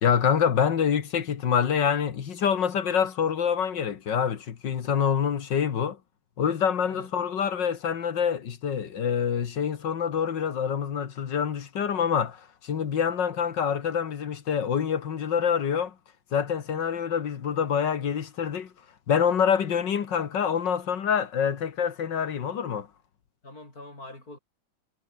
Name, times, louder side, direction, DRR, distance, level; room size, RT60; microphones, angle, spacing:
voice 1, 0.0-6.0 6.4-15.9 16.3-18.7 19.1-22.9, left 7 dB, 70° left, 2.2 m, -26 dB
voice 2, 16.7-17.0 23.4-24.4, left 2 dB, 50° left, 8.2 m, -45 dB
omnidirectional pair, 2.1 m